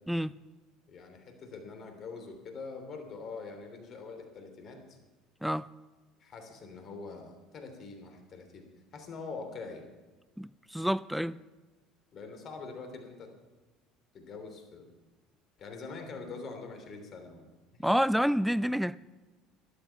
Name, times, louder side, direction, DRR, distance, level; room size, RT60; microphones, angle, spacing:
voice 1, 0.1-0.4 5.4-5.7 10.4-11.4 17.8-19.0, equal, ahead, 0.4 m, -28 dB
voice 2, 0.9-5.0 6.2-8.7 8.9-9.9 12.1-13.3 14.1-14.9 15.6-17.5, left 4 dB, 50° left, 3.1 m, -44 dB
13.0 x 12.0 x 5.8 m
hypercardioid pair, 70°, 0 cm